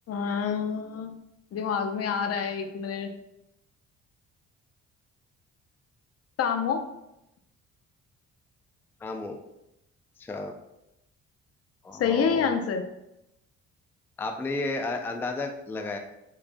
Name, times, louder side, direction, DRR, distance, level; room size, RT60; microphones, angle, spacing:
voice 1, 0.1-1.1 1.5-3.1 6.4-6.9 12.0-12.8, left 6 dB, 55° left, 6 dB, 0.5 m, -27 dB
voice 2, 9.0-9.4 10.2-10.5 11.8-12.5 14.2-16.0, left 2 dB, 10° left, 4 dB, 0.3 m, -32 dB
4.8 x 2.2 x 2.5 m, 0.86 s
cardioid pair, 90°, 30 cm